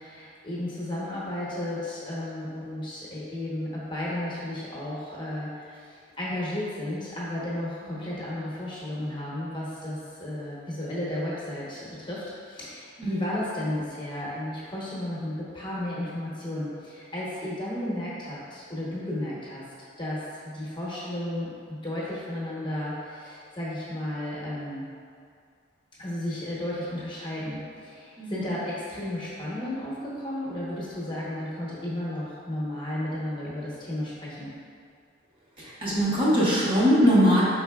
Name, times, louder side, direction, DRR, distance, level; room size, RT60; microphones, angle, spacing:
voice 1, 0.0-19.6 20.0-24.9 26.0-34.5, left 1 dB, 25° left, -7 dB, 0.8 m, -33 dB
voice 2, 35.6-37.4, equal, 30° right, -8 dB, 0.7 m, -22 dB
4.5 x 3.8 x 2.2 m, 2.3 s
head